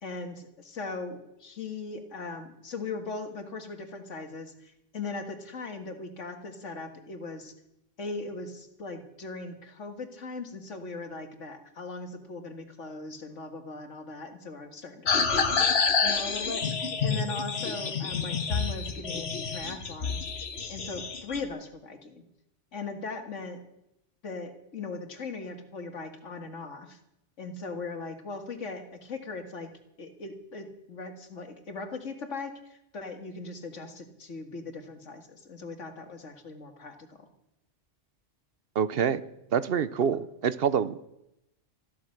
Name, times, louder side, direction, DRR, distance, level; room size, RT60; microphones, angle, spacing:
voice 1, 0.0-7.5 8.0-20.3 20.7-22.2 22.7-23.6 24.2-27.0 27.4-29.7 30.0-37.3, left 3 dB, 85° left, 6 dB, 2.1 m, -39 dB
sound 1, 15.1-21.4, left 5 dB, 60° left, 1.5 m, -28 dB
voice 2, 38.8-39.2 39.5-41.0, right 7 dB, 60° right, 15 dB, 0.9 m, -26 dB
14.5 x 13.0 x 6.5 m, 0.83 s
omnidirectional pair, 1.2 m